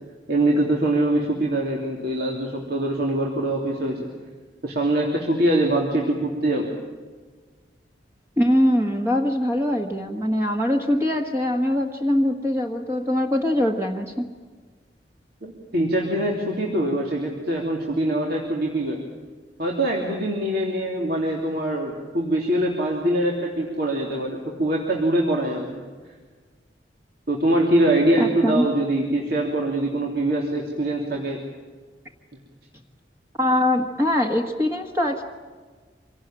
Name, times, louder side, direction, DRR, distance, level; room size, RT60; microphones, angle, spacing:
voice 1, 0.3-4.1 4.6-6.7 15.4-19.0 19.6-25.8 27.3-31.4, right 1 dB, 60° right, -1 dB, 3.2 m, -23 dB
voice 2, 8.4-14.2 28.2-28.6 33.4-35.2, left 1 dB, 15° right, 1 dB, 1.5 m, -22 dB
26.0 x 18.0 x 9.0 m, 1.5 s
head